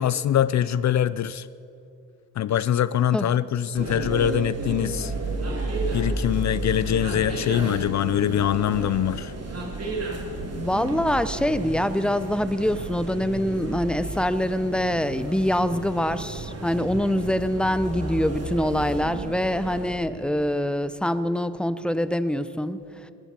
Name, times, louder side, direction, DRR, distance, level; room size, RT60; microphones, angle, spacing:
voice 1, 0.0-1.5 2.4-5.1 5.9-9.3, left 10 dB, 50° left, 0.4 m, -23 dB
sound 1, 3.7-19.9, right 2 dB, 40° right, 3.1 m, -32 dB
voice 2, 10.5-23.1, equal, 5° left, 0.6 m, -25 dB
20.0 x 14.5 x 4.4 m
cardioid pair, 80°, 38 cm